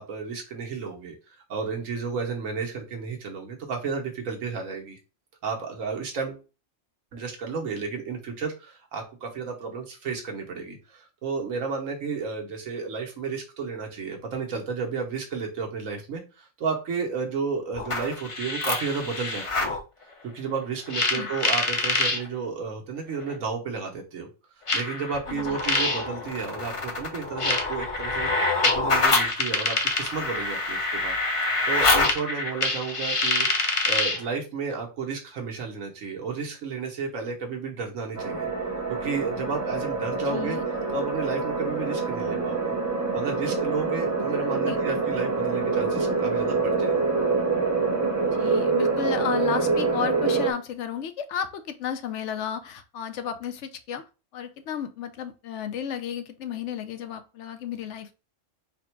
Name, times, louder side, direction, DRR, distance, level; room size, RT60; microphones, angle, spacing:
voice 1, 0.0-5.0 5.4-6.4 7.1-19.8 20.2-24.3 24.7-28.3 28.6-31.1 31.7-38.5 38.9-40.6 40.9-42.7 43.1-47.0, right 5 dB, 90° right, 2 dB, 1.4 m, -32 dB
sound 1, 17.7-19.8 20.9-22.2 23.3-23.4 24.7-34.3, left 3 dB, 35° left, 0.5 m, -25 dB
sound 2, 38.2-50.5, right 4 dB, 25° right, 0.4 m, -26 dB
voice 2, 40.3-40.6 44.6-44.8 48.3-54.0 54.3-58.1, left 8 dB, 70° left, 9 dB, 0.9 m, -32 dB
4.1 x 2.1 x 4.4 m, 0.31 s
omnidirectional pair, 1.3 m